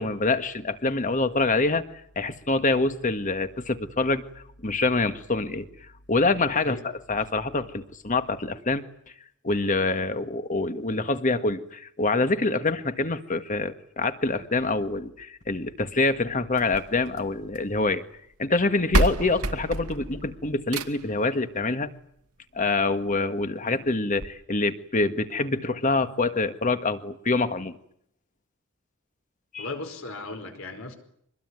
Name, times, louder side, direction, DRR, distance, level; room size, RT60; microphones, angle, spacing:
voice 1, 0.0-1.8 2.1-4.2 4.6-5.7 6.1-6.8 7.1-8.8 9.4-18.0 18.4-21.9 22.5-27.8 29.5-29.7, left 3 dB, 35° left, 10 dB, 1.7 m, -25 dB
voice 2, 6.5-6.9 7.1-7.2 23.6-23.8 29.6-31.0, left 3 dB, 65° left, 6 dB, 4.9 m, -37 dB
sound 1, 16.5-17.8 18.6-18.7 18.9-21.2 22.5-22.6 23.1-23.2 23.5-23.6 24.2-24.3, right 2 dB, 90° right, 2.1 m, -28 dB
24.5 x 21.0 x 9.7 m, 0.68 s
head